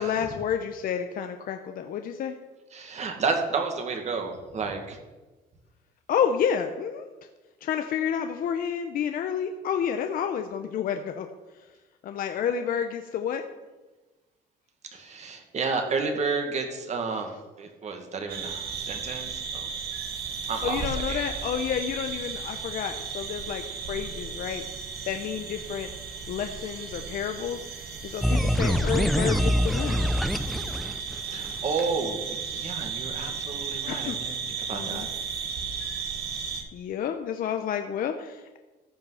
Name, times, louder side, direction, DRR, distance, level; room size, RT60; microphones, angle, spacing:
voice 1, 0.0-2.3 6.1-7.0 7.6-11.3 12.0-13.4 20.6-24.6 25.1-25.9 26.3-30.1 33.9-34.2 34.7-35.1 36.7-38.6, left 8 dB, 55° left, 7 dB, 0.8 m, -30 dB
voice 2, 2.7-5.0 14.9-19.7 20.5-21.3 31.2-34.4 34.7-35.1, right 4 dB, 40° right, 4 dB, 1.9 m, -31 dB
sound 1, 18.3-36.6, right 6 dB, 70° right, 1.8 m, -35 dB
sound 2, 28.2-31.5, equal, ahead, 0.5 m, -24 dB
14.0 x 5.7 x 5.6 m, 1.2 s
cardioid pair, 110°, 17 cm